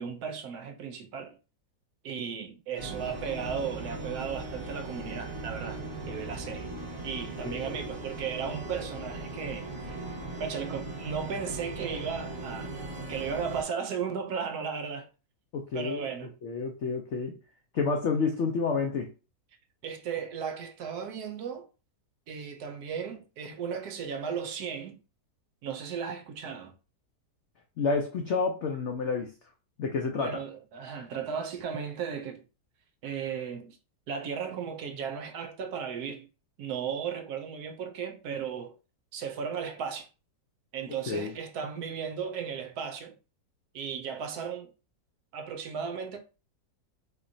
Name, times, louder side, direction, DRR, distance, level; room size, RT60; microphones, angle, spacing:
voice 1, 0.0-1.4 2.0-6.7 7.0-10.0 10.4-12.7 13.1-15.1 15.7-16.3 19.8-21.7 22.3-25.0 25.6-26.7 30.1-32.4 33.0-33.8 34.1-36.3 36.6-38.7 39.1-40.1 40.7-43.1 43.7-44.7 45.3-46.2, right 7 dB, 70° right, 1.0 m, -35 dB
sound 1, 2.8-13.6, right 2 dB, 35° right, 1.3 m, -38 dB
voice 2, 7.4-7.8 15.5-16.0 16.4-17.4 17.7-19.1 27.8-29.3 29.8-30.4 41.1-41.3, left 4 dB, 90° left, 0.6 m, -29 dB
4.0 x 3.0 x 2.6 m
omnidirectional pair, 1.9 m